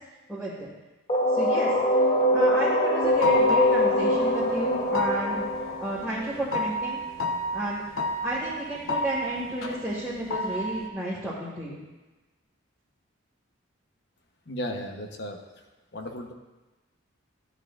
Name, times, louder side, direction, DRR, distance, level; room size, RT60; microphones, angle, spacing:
voice 1, 0.3-0.7 1.3-1.7 2.3-5.4 5.8-7.0 7.5-7.8 8.2-11.8, right 1 dB, ahead, -9 dB, 2.0 m, -32 dB
sound 1, 1.1-6.8, left 1 dB, 30° left, 0.9 m, -23 dB
sound 2, 3.0-10.9, left 2 dB, 85° left, 0.9 m, -31 dB
voice 2, 14.5-15.6 15.9-16.3, equal, 55° left, 4 dB, 1.0 m, -35 dB
13.5 x 9.3 x 2.5 m, 1.2 s
head